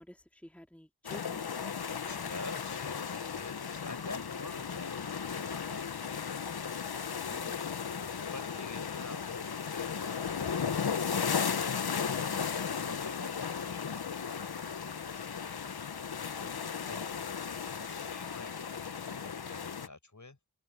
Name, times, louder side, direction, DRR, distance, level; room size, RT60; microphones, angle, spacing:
voice 1, 0.0-2.3, equal, 5° left, 2.6 m, -54 dB
sound 1, 1.0-19.9, left 6 dB, 75° left, 1.1 m, -35 dB
voice 2, 2.0-6.6 7.3-7.5 7.8-12.4 12.8-15.9 16.2-20.4, left 3 dB, 50° left, 7.6 m, -49 dB
cardioid pair, 40°, 38 cm